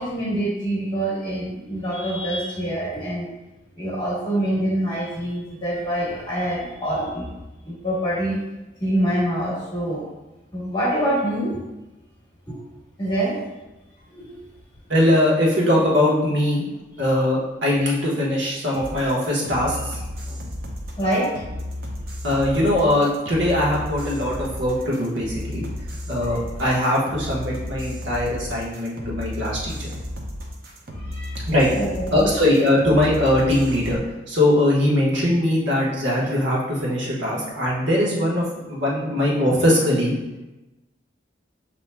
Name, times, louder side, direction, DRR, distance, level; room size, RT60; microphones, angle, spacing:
voice 1, 0.0-3.3 3.8-7.3 7.6-8.4 8.8-10.1 10.5-11.6 12.5-12.6 13.0-13.4 14.1-14.3 21.0-21.3 31.1-31.4 31.7-32.3, right 1 dB, 25° left, -7 dB, 1.1 m, -25 dB
voice 2, 14.9-16.6 17.0-20.0 22.2-25.6 26.1-29.9 31.5-31.7 32.1-34.0 34.3-40.1, left 1 dB, 70° right, -5 dB, 1.2 m, -21 dB
sound 1, 18.7-34.0, left 1 dB, 50° right, 0.6 m, -33 dB
6.9 x 2.9 x 2.2 m, 1.0 s
head